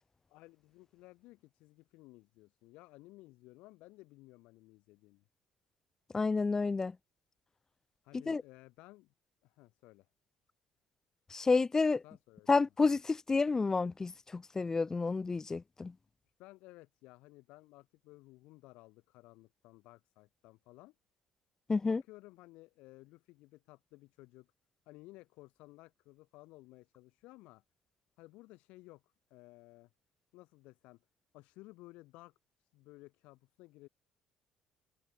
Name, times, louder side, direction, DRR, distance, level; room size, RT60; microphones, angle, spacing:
voice 1, 0.3-5.2 8.0-9.1 9.4-10.1 12.0-12.5 16.4-20.9 21.9-24.5 24.9-27.6 28.2-29.9 30.3-31.0 31.3-32.3 32.6-33.9, left 20 dB, 75° left, 6.3 m, -56 dB
voice 2, 6.1-7.0 8.3-8.4 11.3-12.0 12.5-15.9 21.7-22.0, left 4 dB, 25° left, 0.5 m, -30 dB
hypercardioid pair, 60°, 2 cm